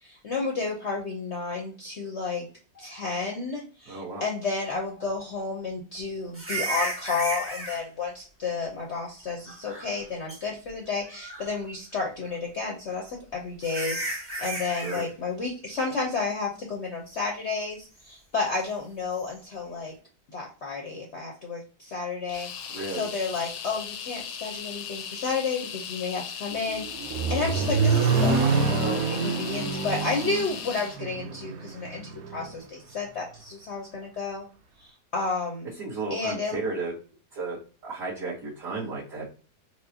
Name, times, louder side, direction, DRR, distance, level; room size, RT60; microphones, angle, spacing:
voice 1, 0.0-2.5 2.7-14.0 14.4-19.9 20.3-32.0 32.3-34.4 34.8-35.7 36.1-36.6, left 4 dB, 55° left, -1 dB, 0.8 m, -31 dB
voice 2, 3.9-4.2 14.7-15.0 22.7-23.1 35.8-36.9 37.3-37.6 37.8-39.3, right 3 dB, 50° right, -9 dB, 1.5 m, -33 dB
sound 1, 6.3-7.8 9.5-10.0 10.3-10.4 11.1-11.6 12.9-13.0 13.6-15.1 19.1-19.3, right 1 dB, 10° right, 0.7 m, -33 dB
sound 2, 22.3-31.0, left 7 dB, 80° left, 1.2 m, -38 dB
Accelerating revving vroom, 26.5-32.5, right 4 dB, 70° right, 0.9 m, -26 dB
4.5 x 2.0 x 2.7 m, 0.37 s
omnidirectional pair, 1.9 m